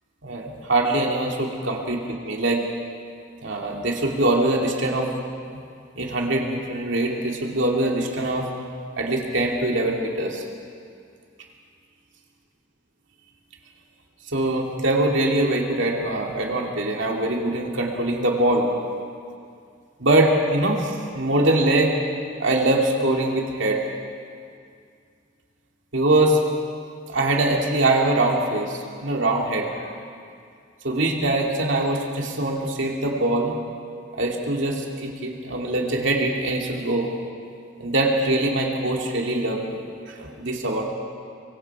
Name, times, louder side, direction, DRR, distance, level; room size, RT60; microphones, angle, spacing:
voice 1, 0.2-2.6 3.4-5.1 6.0-8.5 9.0-10.4 14.3-18.7 20.0-21.9 22.4-23.8 25.9-26.4 27.1-29.9 30.8-33.6 34.2-37.1 37.8-39.8 40.1-40.8, right 2 dB, 65° right, 0 dB, 2.6 m, -23 dB
24.5 x 23.5 x 4.8 m, 2.3 s
head